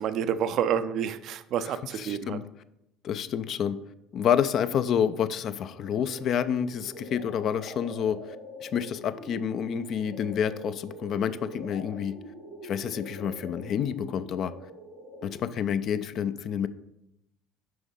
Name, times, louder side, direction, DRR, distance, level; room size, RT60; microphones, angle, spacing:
voice 1, 0.0-2.4, right 8 dB, 50° right, 12 dB, 0.4 m, -29 dB
voice 2, 1.9-2.4 3.0-3.8 4.1-8.2 8.6-12.2 12.6-14.5 15.2-16.7, left 8 dB, 50° left, 13 dB, 0.4 m, -28 dB
sound 1, 5.6-15.6, left 1 dB, 90° left, 1.6 m, -44 dB
7.7 x 5.3 x 3.7 m, 0.84 s
figure-of-eight pair, 60°, 0 cm